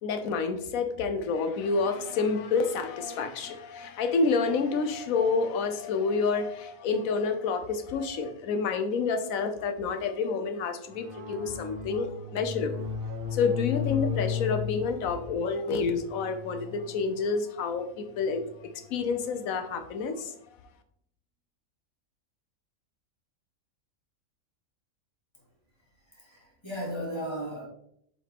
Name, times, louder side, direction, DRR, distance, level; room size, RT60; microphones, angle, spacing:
voice 1, 0.0-12.9 13.3-20.3, left 4 dB, 80° left, 8 dB, 1.2 m, -29 dB
sound 1, 10.9-19.0, left 7 dB, 90° right, 1.9 m, -36 dB
voice 2, 26.0-27.7, equal, 20° left, -3 dB, 2.1 m, -36 dB
7.4 x 4.3 x 3.6 m, 0.70 s
omnidirectional pair, 1.4 m